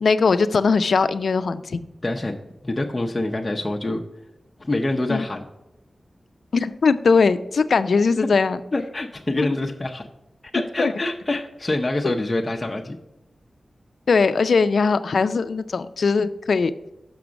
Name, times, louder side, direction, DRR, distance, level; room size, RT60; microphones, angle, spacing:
voice 1, 0.0-1.9 5.1-5.2 6.5-8.6 9.4-9.5 10.8-10.9 12.0-12.2 14.1-16.7, left 4 dB, 75° left, 12 dB, 0.4 m, -20 dB
voice 2, 2.0-2.4 2.6-4.0 4.6-5.5 8.7-10.1 10.5-13.0, left 2 dB, 25° left, 1 dB, 0.6 m, -25 dB
6.0 x 5.9 x 5.1 m, 0.94 s
wide cardioid pair, 90°, 0 cm